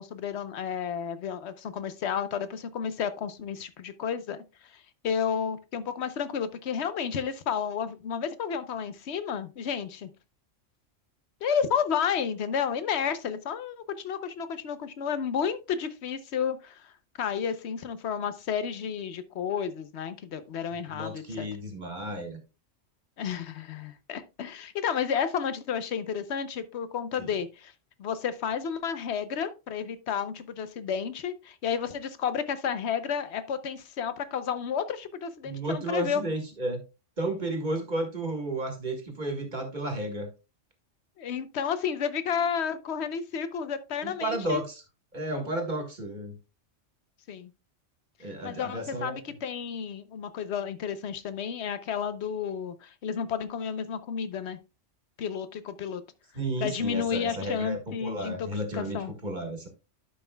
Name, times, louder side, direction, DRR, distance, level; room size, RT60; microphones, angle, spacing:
voice 1, 0.0-4.4 4.7-10.1 11.4-16.9 17.2-21.5 23.2-27.7 28.0-36.2 41.2-44.6 47.3-47.5 48.4-54.6 55.2-56.0 56.6-59.1, left 7 dB, 65° left, 1.0 m, -31 dB
voice 2, 20.9-22.4 27.2-27.3 35.4-36.8 37.2-40.3 44.0-44.8 45.1-46.4 48.2-49.2 56.3-59.7, right 1 dB, 40° right, 1.6 m, -32 dB
12.0 x 5.6 x 2.2 m
omnidirectional pair, 1.3 m